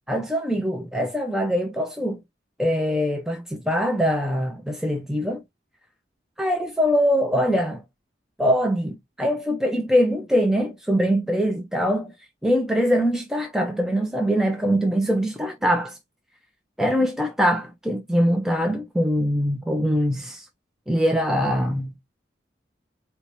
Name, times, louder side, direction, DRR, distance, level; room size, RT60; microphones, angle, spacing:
voice 1, 0.1-2.2 2.6-5.4 6.4-7.8 8.4-12.1 12.4-16.0 16.8-20.5 20.9-21.9, equal, 5° right, 0.4 m, -23 dB
4.4 x 2.1 x 2.8 m
head